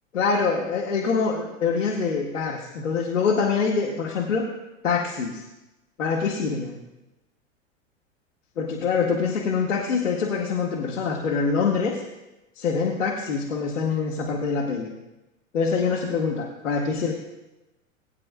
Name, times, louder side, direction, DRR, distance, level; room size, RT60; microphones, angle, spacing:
voice 1, 0.1-4.5 4.8-5.4 6.0-6.8 8.6-12.0 12.6-14.9 15.5-17.1, left 5 dB, 65° left, -2 dB, 1.6 m, -25 dB
20.5 x 9.1 x 2.3 m, 1.0 s
figure-of-eight pair, 90°, 40 cm